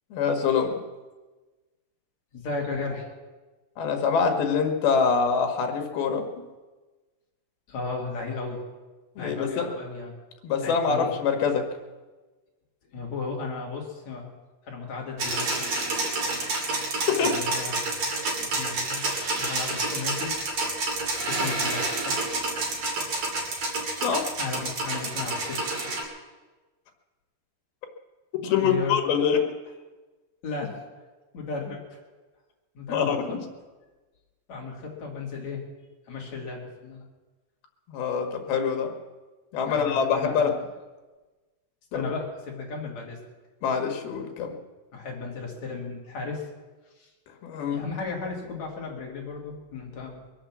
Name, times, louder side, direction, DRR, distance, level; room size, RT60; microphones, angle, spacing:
voice 1, 0.1-0.8 3.8-6.3 9.2-9.7 10.4-11.7 16.4-16.5 17.1-17.4 24.0-24.3 28.4-29.4 32.9-33.4 37.9-38.9 39.5-40.5 41.9-42.1 43.6-44.6 47.4-47.8, left 6 dB, 80° left, 4 dB, 3.6 m, -25 dB
voice 2, 2.3-3.1 7.7-8.6 9.2-10.1 10.6-11.1 12.9-14.3 14.6-15.7 17.2-17.8 18.4-19.1 19.4-20.4 21.2-22.2 24.4-25.9 28.6-29.0 30.4-30.8 31.3-32.0 32.7-33.4 34.5-35.6 36.1-37.0 39.7-40.5 41.9-43.2 44.9-46.5 46.9-47.1 47.7-50.2, left 4 dB, 50° left, -1 dB, 3.4 m, -35 dB
sound 1, 15.2-26.0, right 2 dB, 45° right, 3.3 m, -29 dB
23.0 x 7.8 x 7.4 m, 1.2 s
omnidirectional pair, 4.3 m